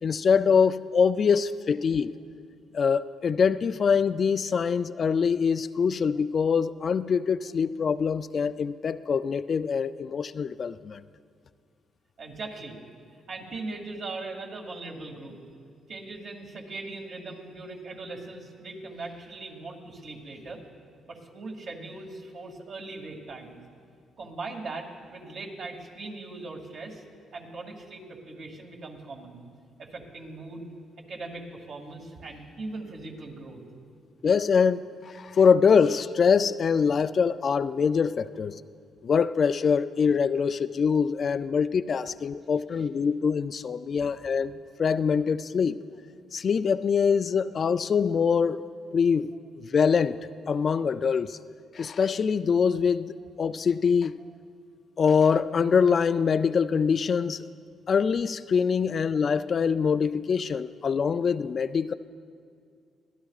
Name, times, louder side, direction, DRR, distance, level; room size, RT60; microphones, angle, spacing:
voice 1, 0.0-2.1 2.7-11.0 34.2-38.6 39.0-45.8 46.3-48.6 48.9-49.3 49.6-50.2 50.5-51.4 51.7-54.2 55.0-57.5 57.9-61.9, left 6 dB, 50° left, 13 dB, 0.3 m, -24 dB
voice 2, 12.2-12.8 13.3-15.4 15.9-20.6 21.1-23.6 24.2-27.0 27.3-29.4 29.8-30.7 31.1-33.6, right 3 dB, 60° right, 1 dB, 2.3 m, -39 dB
24.5 x 16.5 x 2.4 m, 2.2 s
cardioid pair, 90°, 0 cm